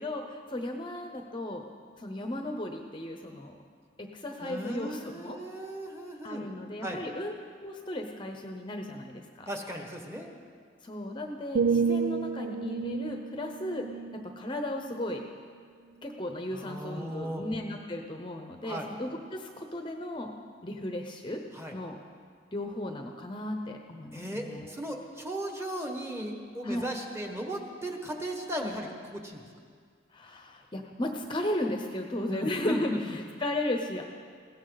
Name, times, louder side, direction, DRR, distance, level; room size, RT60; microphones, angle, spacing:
voice 1, 0.0-1.6 2.0-3.6 4.0-5.4 6.2-7.3 7.6-9.5 10.8-13.9 14.1-15.2 16.0-20.3 20.6-21.4 21.7-22.0 22.5-24.7 26.6-26.9 30.1-34.0, left 1 dB, 25° left, 3 dB, 0.8 m, -35 dB
voice 2, 4.4-6.5 6.8-7.0 9.5-10.3 16.5-17.4 18.6-18.9 21.5-21.7 24.1-29.4 32.3-33.2, equal, 15° right, 2 dB, 1.5 m, -36 dB
sound 1, 11.5-15.4 15.9-16.2, right 5 dB, 60° right, 0.3 m, -31 dB
20.5 x 16.5 x 4.0 m, 2.1 s
head